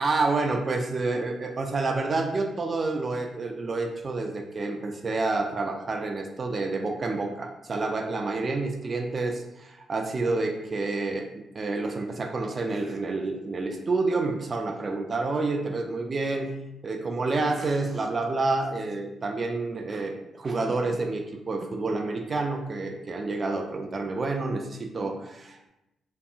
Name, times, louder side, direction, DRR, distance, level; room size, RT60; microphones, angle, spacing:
voice 1, 0.0-16.5 16.8-25.7, right 3 dB, 45° right, 3 dB, 0.4 m, -29 dB
2.7 x 2.6 x 2.4 m, 0.89 s
supercardioid pair, 50°, 0 cm